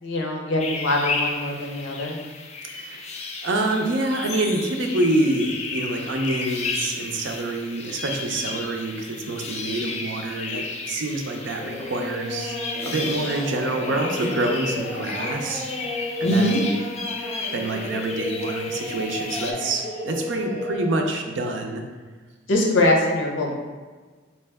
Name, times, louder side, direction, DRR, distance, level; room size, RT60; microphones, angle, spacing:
voice 1, 0.0-2.2 16.2-16.6 22.5-23.5, left 1 dB, 90° left, 0 dB, 0.7 m, -22 dB
sound 1, 0.6-19.5, left 4 dB, 35° left, 0.4 m, -33 dB
voice 2, 2.7-3.2 3.4-12.6 12.8-16.4 17.5-21.8, right 2 dB, 75° right, 3 dB, 0.5 m, -26 dB
Singing, 11.6-21.0, left 2 dB, 10° right, 1.5 m, -32 dB
3.2 x 2.9 x 3.4 m, 1.4 s
head